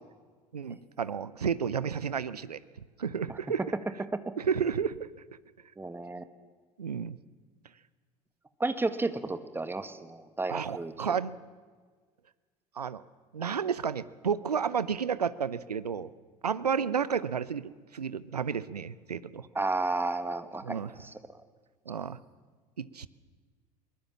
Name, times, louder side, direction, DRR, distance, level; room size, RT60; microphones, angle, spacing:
voice 1, 0.5-2.6 3.0-3.6 4.4-5.1 6.8-7.2 10.5-11.4 12.8-13.0 13.3-16.1 16.4-19.5 20.6-20.9 21.9-22.2 22.8-23.1, right 7 dB, 80° right, 17 dB, 0.8 m, -31 dB
voice 2, 5.8-6.2 8.6-11.2 19.6-21.1, right 3 dB, 10° right, 11 dB, 1.7 m, -32 dB
23.0 x 21.0 x 7.3 m, 1.5 s
figure-of-eight pair, 70°, 20 cm